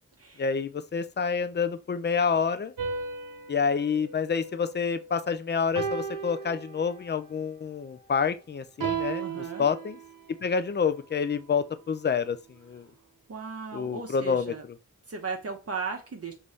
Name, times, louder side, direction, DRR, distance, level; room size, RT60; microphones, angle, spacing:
voice 1, 0.4-2.7 3.5-10.0 10.4-12.9 13.7-14.5, left 6 dB, 35° left, 0.5 m, -28 dB
sound 1, 2.8-5.2 5.8-7.2 8.8-10.5, right 6 dB, 85° right, 0.9 m, -35 dB
voice 2, 9.2-9.7 13.3-14.6 15.1-16.3, right 5 dB, 50° right, 0.8 m, -36 dB
5.3 x 2.7 x 3.2 m
wide cardioid pair, 80°, 32 cm